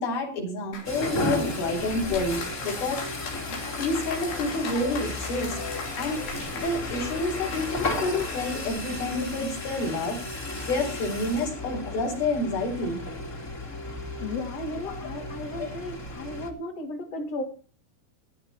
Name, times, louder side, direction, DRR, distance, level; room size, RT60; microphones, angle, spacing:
voice 1, 0.0-3.0 3.8-5.6 6.0-6.2 6.5-10.2 10.7-13.0 14.9-15.0 15.6-15.7, left 2 dB, 65° left, -1 dB, 6.1 m, -29 dB
Applause, 0.7-10.1, left 4 dB, 90° left, 5.3 m, -38 dB
sound 1, 0.8-16.5, left 2 dB, 25° left, 1.8 m, -34 dB
voice 2, 13.9-17.4, left 2 dB, 45° left, -1 dB, 2.5 m, -35 dB
16.5 x 11.0 x 4.5 m, 0.40 s
omnidirectional pair, 4.7 m